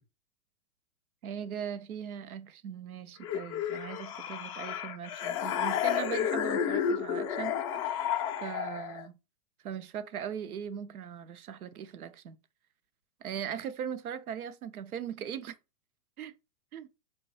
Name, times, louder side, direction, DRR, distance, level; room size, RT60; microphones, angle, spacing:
voice 1, 1.2-8.1 8.4-9.1 9.6-12.4 13.2-15.6 16.2-16.3 16.7-16.9, right 8 dB, 85° right, 0.7 m, -39 dB
sound 1, 3.2-9.1, left 9 dB, 25° left, 0.3 m, -31 dB
5.1 x 2.2 x 4.0 m
hypercardioid pair, 120°, 43 cm